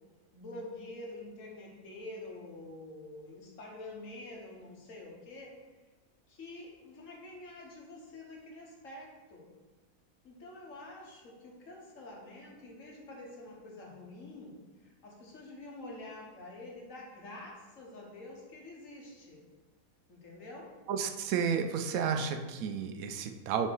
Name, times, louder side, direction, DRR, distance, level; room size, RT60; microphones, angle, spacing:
voice 1, 0.3-5.5 6.3-9.5 10.2-14.5 14.8-19.4 20.1-20.7, left 2 dB, 65° left, -1 dB, 1.5 m, -47 dB
voice 2, 20.9-23.7, right 7 dB, 80° right, 6 dB, 1.0 m, -32 dB
6.0 x 3.4 x 4.6 m, 1.2 s
omnidirectional pair, 1.5 m